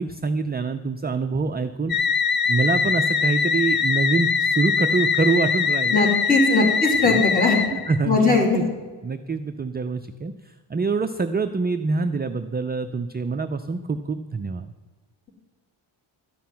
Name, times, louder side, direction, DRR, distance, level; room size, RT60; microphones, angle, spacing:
voice 1, 0.0-2.0 2.5-6.7 7.0-7.2 7.7-8.7 9.0-14.7, right 4 dB, 25° right, 8 dB, 0.3 m, -25 dB
sound 1, 1.9-8.0, left 6 dB, 50° left, 0.8 m, -22 dB
voice 2, 5.9-7.6 8.1-8.6, left 3 dB, 15° left, 0 dB, 3.1 m, -19 dB
12.5 x 5.8 x 9.3 m, 1.4 s
wide cardioid pair, 140°, 49 cm